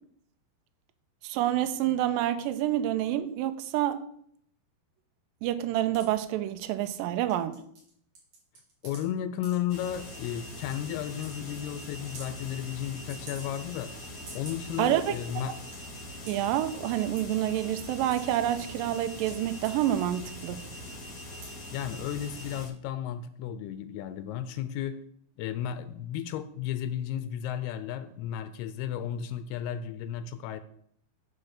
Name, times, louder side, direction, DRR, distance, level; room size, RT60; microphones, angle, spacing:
voice 1, 1.2-4.0 5.4-7.6 14.8-15.2 16.3-20.6, right 12 dB, 85° right, 2.0 m, -28 dB
sound 1, 5.9-6.1 6.9-7.0 7.3-9.0 9.4-9.6 10.2-10.3 10.6-10.7 11.1-11.3 11.5-11.6 12.0-12.3 13.1-13.8 14.1-14.7 15.1-15.2 15.4-15.8 16.3-16.5 17.2-17.4 17.8-18.5 19.0-19.7 20.3-20.6 21.0-21.1 21.4-21.6 21.9-22.0, right 3 dB, 50° right, 4.1 m, -47 dB
voice 2, 8.8-13.9 14.3-15.6 21.7-25.0 25.4-30.6, left 10 dB, 85° left, 2.5 m, -34 dB
sound 2, 9.7-22.7, left 1 dB, 35° left, 1.6 m, -42 dB
9.8 x 4.4 x 6.5 m
omnidirectional pair, 4.6 m